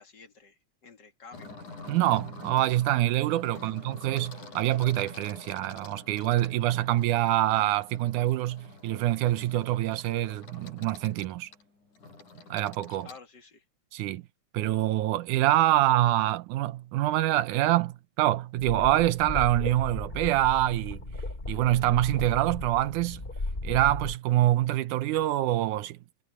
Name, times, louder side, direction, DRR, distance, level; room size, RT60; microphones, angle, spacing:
voice 1, 0.0-1.5 3.5-3.8 13.0-13.6, left 4 dB, 35° left, 2.7 m, -51 dB
sound 1, 1.3-13.2, left 3 dB, 85° left, 8.9 m, -47 dB
voice 2, 1.9-11.5 12.5-13.1 13.9-14.2 14.5-21.0 21.5-23.2 23.6-26.0, right 14 dB, 85° right, 2.3 m, -25 dB
sound 2, 18.6-24.2, left 2 dB, 20° left, 2.9 m, -36 dB
omnidirectional pair, 3.4 m